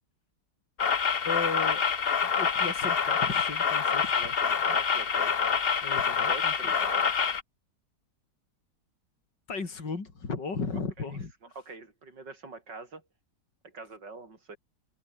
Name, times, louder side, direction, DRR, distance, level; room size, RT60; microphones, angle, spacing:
sound 1, 0.8-7.4, left 6 dB, 40° left, 1.1 m, -26 dB
voice 1, 1.2-1.8 2.4-4.1 5.8-6.5 9.5-11.6, left 4 dB, 75° left, 4.2 m, -35 dB
voice 2, 4.2-5.4 6.0-7.1 11.0-11.1 11.6-13.0 13.6-14.6, right 3 dB, 80° right, 5.3 m, -44 dB
omnidirectional pair, 1.9 m